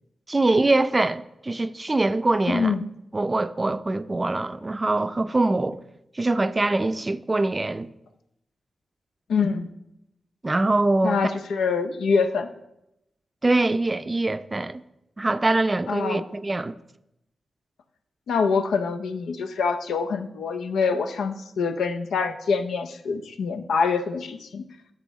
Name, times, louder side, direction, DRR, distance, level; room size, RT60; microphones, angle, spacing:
voice 1, 0.3-2.7 3.1-5.8 6.2-7.9 10.4-11.4 13.4-14.8 15.2-16.7, right 2 dB, 30° right, 0.4 m, -23 dB
voice 2, 2.5-2.9 9.3-9.7 11.0-12.5 15.9-16.2 18.3-24.7, left 5 dB, 90° left, 0.5 m, -25 dB
9.8 x 6.8 x 3.1 m
cardioid pair, 45°, 0 cm